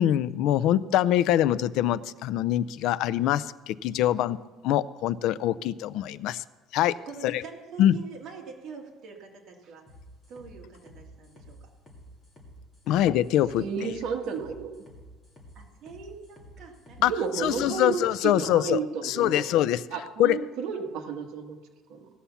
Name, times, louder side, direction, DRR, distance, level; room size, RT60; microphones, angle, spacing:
voice 1, 0.0-4.4 4.6-6.4 6.7-7.0 7.2-7.4 7.8-7.9 12.9-13.9 17.0-17.1 17.4-19.8 20.2-20.4, left 12 dB, 60° left, 18 dB, 0.4 m, -24 dB
voice 2, 7.1-9.8 10.3-11.7 12.9-13.0 15.6-17.2, right 5 dB, 45° right, -1 dB, 2.2 m, -45 dB
sound 1, 9.9-17.6, equal, 10° left, 2.6 m, -50 dB
voice 3, 13.6-14.7 17.1-19.5 19.9-21.6 21.9-22.0, right 6 dB, 60° right, 3 dB, 1.5 m, -32 dB
17.0 x 5.7 x 7.1 m, 1.4 s
cardioid pair, 170°, 0 cm